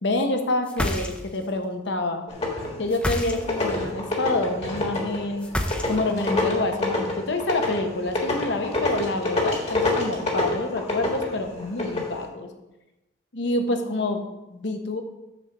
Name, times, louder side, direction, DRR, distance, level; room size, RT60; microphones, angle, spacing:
voice 1, 0.0-2.3 2.8-5.5 5.9-12.5 13.3-15.0, left 2 dB, 65° left, 5 dB, 0.9 m, -27 dB
sound 1, 0.6-1.5 2.9-3.7 5.4-6.3, equal, 5° left, 0.5 m, -28 dB
sound 2, 2.3-2.9 3.3-12.1, left 2 dB, 30° left, 1.5 m, -27 dB
6.2 x 4.5 x 6.5 m, 0.99 s
head